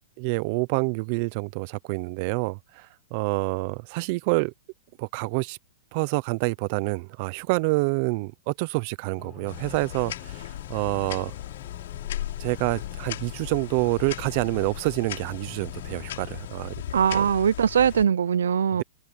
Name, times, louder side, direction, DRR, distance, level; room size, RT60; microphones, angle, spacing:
voice 1, 0.2-4.5 5.0-5.6 5.9-10.4 10.7-11.3 12.4-16.7 17.1-17.3 18.7-18.8, right 26 dB, 45° right, 0.6 m, -27 dB
sound 1, 9.2-16.5, left 15 dB, 30° left, 4.4 m, -46 dB
sound 2, 9.5-18.0, left 12 dB, 70° left, 4.9 m, -37 dB
voice 2, 16.9-18.8, right 8 dB, 85° right, 0.6 m, -21 dB
hypercardioid pair, 140°, 0 cm